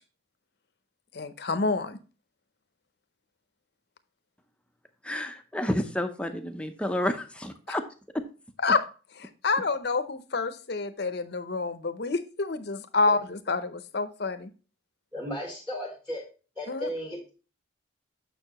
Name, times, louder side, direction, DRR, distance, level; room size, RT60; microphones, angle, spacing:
voice 1, 1.1-2.0 7.7-7.8 8.6-8.8 9.2-14.5 16.7-16.9, left 3 dB, 55° left, 11 dB, 0.7 m, -28 dB
voice 2, 5.0-7.8, left 1 dB, 5° left, 6 dB, 0.6 m, -30 dB
voice 3, 15.1-16.2 16.6-17.3, equal, 10° right, 1 dB, 1.2 m, -35 dB
6.8 x 6.7 x 2.9 m, 0.35 s
head